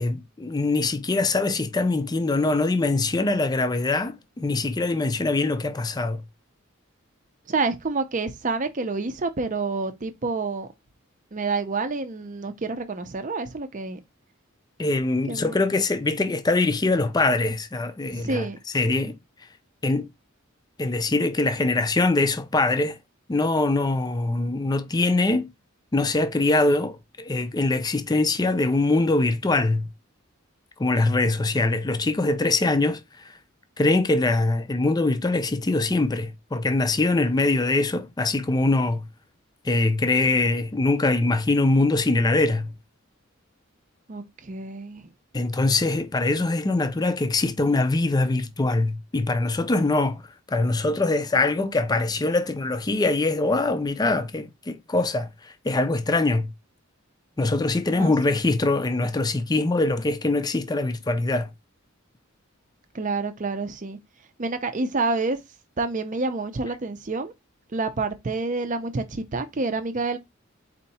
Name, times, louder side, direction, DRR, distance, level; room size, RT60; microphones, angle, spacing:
voice 1, 0.0-6.2 14.8-18.5 18.7-19.2 19.8-20.1 20.8-23.0 23.3-25.5 25.9-29.9 30.8-33.3 33.8-39.0 39.6-42.7 45.3-50.2 50.5-55.3 55.6-56.5 57.4-61.5, left 2 dB, 20° left, 0.4 m, -23 dB
voice 2, 7.5-10.7 11.3-14.0 15.3-15.6 18.1-18.6 44.1-45.1 58.0-58.1 62.9-64.0 64.4-65.4 65.8-67.3 67.7-70.2, right 3 dB, 40° right, 0.6 m, -28 dB
4.3 x 2.8 x 4.1 m
head